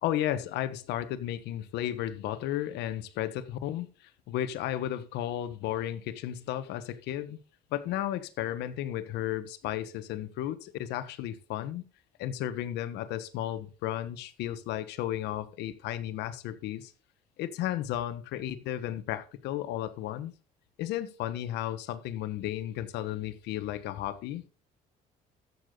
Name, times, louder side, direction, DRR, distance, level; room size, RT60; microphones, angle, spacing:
voice 1, 0.0-7.4 7.7-11.8 12.2-16.9 17.4-20.3 20.8-24.4, left 12 dB, 85° left, 1.2 m, -34 dB
14.5 x 6.7 x 3.9 m
cardioid pair, 110°, 17 cm